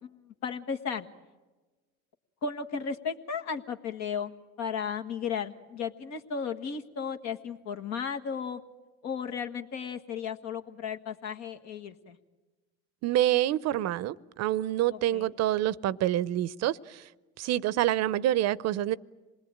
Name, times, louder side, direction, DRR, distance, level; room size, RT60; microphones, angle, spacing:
voice 1, 0.0-1.1 2.4-4.3 4.6-8.6 9.0-12.2 14.9-15.3, left 6 dB, 60° left, 1.6 m, -35 dB
voice 2, 13.0-17.0 17.4-18.9, right 13 dB, 55° right, 0.7 m, -27 dB
26.5 x 19.5 x 8.8 m
supercardioid pair, 85°, 31 cm